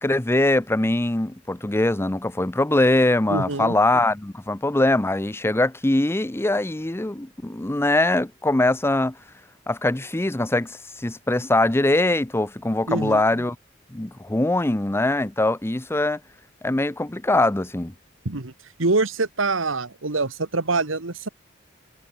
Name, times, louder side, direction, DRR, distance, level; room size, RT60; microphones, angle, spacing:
voice 1, 0.0-9.1 9.7-13.6 13.9-16.2 16.6-17.9, left 2 dB, 15° left, 0.7 m, -22 dB
voice 2, 3.3-3.7 12.9-13.4 18.2-18.5 18.8-21.3, right 3 dB, 90° right, 1.7 m, -25 dB
head